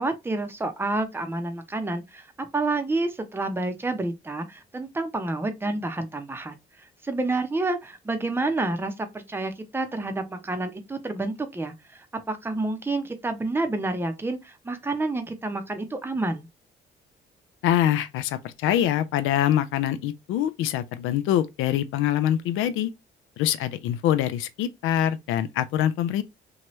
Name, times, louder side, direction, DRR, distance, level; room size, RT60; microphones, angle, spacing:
voice 1, 0.0-16.5, right 2 dB, 10° right, 0.6 m, -29 dB
voice 2, 17.6-22.9 23.4-26.2, left 11 dB, 90° left, 0.4 m, -24 dB
2.8 x 2.2 x 3.0 m
cardioid pair, 90°, 20 cm